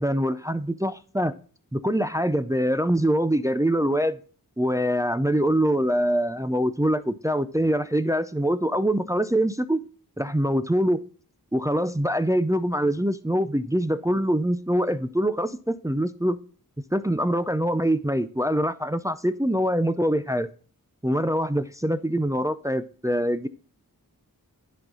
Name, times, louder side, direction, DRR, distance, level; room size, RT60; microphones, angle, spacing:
voice 1, 0.0-1.3 1.7-4.2 4.6-9.8 10.2-11.0 11.5-16.4 16.9-20.5 21.0-23.5, equal, 10° right, 12 dB, 0.4 m, -24 dB
10.5 x 4.0 x 3.7 m, 0.42 s
wide cardioid pair, 60°, 36 cm